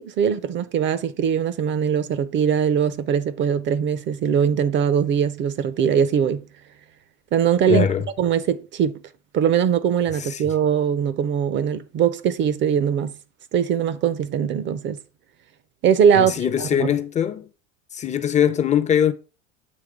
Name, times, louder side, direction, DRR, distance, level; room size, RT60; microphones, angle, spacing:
voice 1, 0.0-6.4 7.3-7.9 8.2-9.0 9.3-13.1 13.5-15.0 15.8-16.3 16.8-16.9, right 8 dB, 30° right, 0.5 m, -21 dB
voice 2, 7.7-8.0 10.2-10.4 16.1-17.5 18.0-19.1, left 8 dB, 20° left, 0.5 m, -21 dB
7.9 x 3.0 x 4.9 m
supercardioid pair, 110°, 37 cm